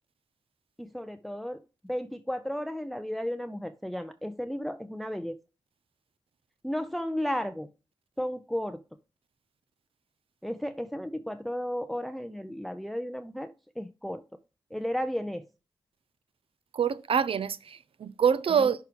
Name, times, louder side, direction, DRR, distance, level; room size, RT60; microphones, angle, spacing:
voice 1, 0.8-5.4 6.6-7.7 8.2-8.8 10.4-14.2 14.7-15.4 18.6-18.7, equal, ahead, 0.5 m, -34 dB
voice 2, 16.7-18.8, right 7 dB, 65° right, 0.5 m, -26 dB
6.1 x 4.6 x 5.0 m
cardioid pair, 45°, 10 cm